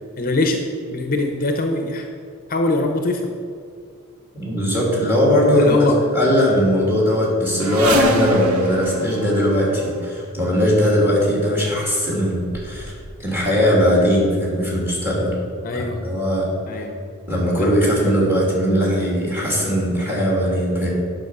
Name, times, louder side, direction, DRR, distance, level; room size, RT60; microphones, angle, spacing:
voice 1, 0.2-0.6 0.9-2.1 2.5-3.2 5.5-6.0 15.6-16.0 16.7-16.9 17.6-17.8, left 2 dB, 40° left, 4 dB, 0.7 m, -22 dB
voice 2, 4.3-5.9 6.1-12.9 13.2-15.3 15.7-16.5 17.3-20.9, equal, 10° right, -4 dB, 2.6 m, -19 dB
sound 1, 7.6-10.1 11.1-11.3 12.0-12.1 12.4-13.3 13.6-14.1 14.8-14.9 15.2-15.3, right 1 dB, 80° right, 1.0 m, -26 dB
9.1 x 6.1 x 6.0 m, 2.3 s
head